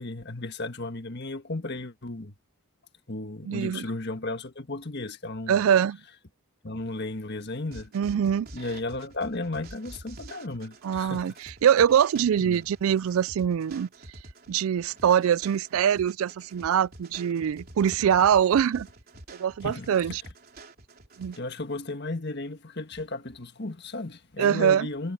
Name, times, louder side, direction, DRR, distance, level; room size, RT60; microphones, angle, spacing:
voice 1, 0.0-2.3 3.1-5.6 6.6-7.9 8.5-11.4 12.4-12.6 19.6-20.2 21.4-25.1, left 2 dB, 50° left, 1.6 m, -34 dB
voice 2, 3.4-3.8 5.5-6.0 7.9-8.5 10.8-11.3 11.6-13.9 14.5-18.9 19.4-20.2 21.2-21.4 24.4-24.9, right 8 dB, 70° right, 0.3 m, -23 dB
sound 1, 7.7-21.4, right 2 dB, 40° right, 3.8 m, -48 dB
head